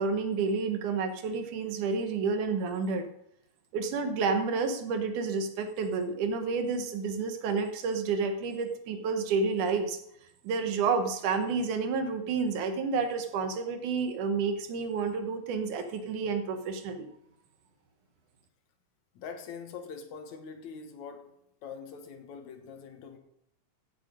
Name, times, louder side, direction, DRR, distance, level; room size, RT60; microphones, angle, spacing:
voice 1, 0.0-3.1 3.7-10.0 10.4-17.1, right 4 dB, 90° right, 7 dB, 2.8 m, -30 dB
voice 2, 19.2-21.3 21.6-23.2, left 6 dB, 75° left, 6 dB, 2.6 m, -43 dB
15.5 x 7.5 x 5.2 m, 0.75 s
omnidirectional pair, 3.4 m